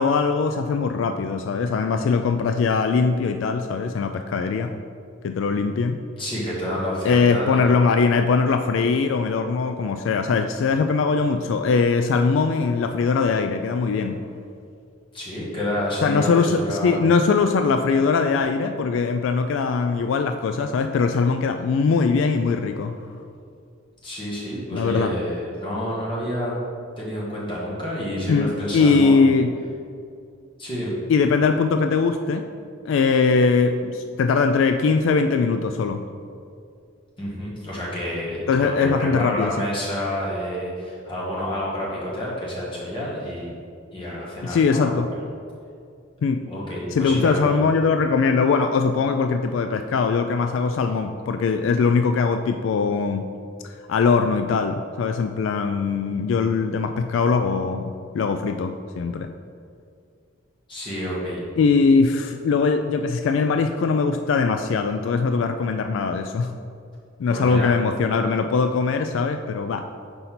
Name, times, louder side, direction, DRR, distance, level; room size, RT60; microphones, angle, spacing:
voice 1, 0.0-4.7 5.2-6.0 7.1-14.2 16.0-23.0 24.7-25.1 28.3-29.5 31.1-32.4 32.9-36.0 38.5-39.5 44.4-45.1 46.2-46.4 46.9-53.2 53.9-59.3 61.6-66.5 67.2-69.9, left 4 dB, 75° left, 7 dB, 0.3 m, -21 dB
voice 2, 6.2-7.7 15.1-17.0 24.0-26.5 27.0-29.4 30.6-30.9 37.2-43.5 43.9-44.9 46.5-47.6 60.7-61.4 67.3-67.7, equal, 25° left, -6 dB, 1.5 m, -29 dB
5.3 x 4.1 x 5.9 m, 2.4 s
head